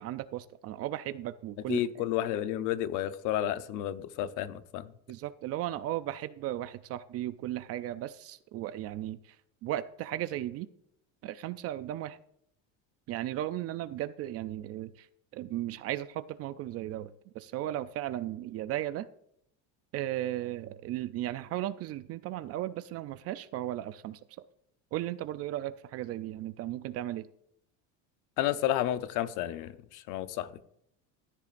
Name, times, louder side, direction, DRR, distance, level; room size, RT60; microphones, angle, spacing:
voice 1, 0.0-2.0 5.1-9.4 9.6-10.7 11.2-12.2 13.1-15.1 15.3-19.1 19.9-24.2 24.9-27.3, right 13 dB, 45° right, 13 dB, 0.5 m, -36 dB
voice 2, 1.7-4.9 28.4-30.5, left 12 dB, 60° left, 12 dB, 0.8 m, -31 dB
14.5 x 10.5 x 2.5 m, 0.72 s
cardioid pair, 150°, 34 cm